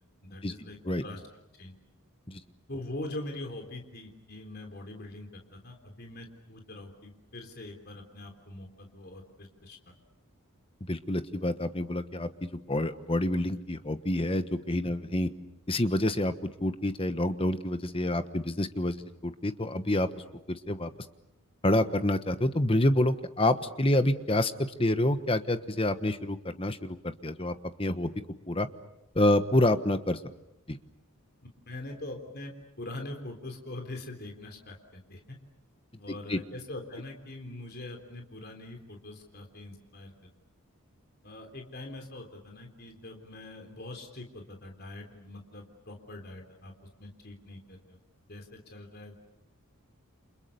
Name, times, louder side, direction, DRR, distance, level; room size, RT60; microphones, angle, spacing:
voice 1, 0.2-1.2 1.6-1.7 2.7-9.8 31.4-35.4 36.0-40.1 41.2-46.7 47.0-48.0 48.3-49.2, left 1 dB, 45° left, 3 dB, 3.6 m, -43 dB
voice 2, 10.9-15.3 15.7-16.3 16.6-19.0 19.2-20.1 20.5-20.9 21.6-28.1 28.5-28.7 29.1-30.2 30.7-30.8 36.3-36.4, left 1 dB, 25° left, 10 dB, 1.2 m, -27 dB
30.0 x 27.5 x 6.9 m, 0.86 s
head